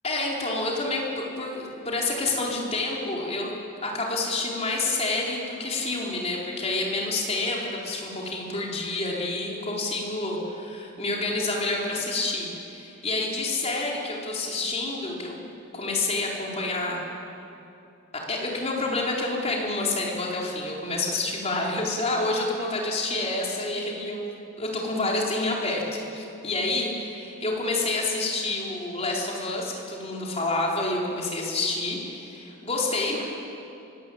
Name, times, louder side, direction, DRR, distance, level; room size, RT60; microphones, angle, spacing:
voice 1, 0.0-3.5 3.8-15.4 15.7-17.0 18.1-25.8 26.1-33.2, left 2 dB, 30° left, -2 dB, 4.5 m, -28 dB
23.5 x 19.5 x 8.8 m, 2.8 s
head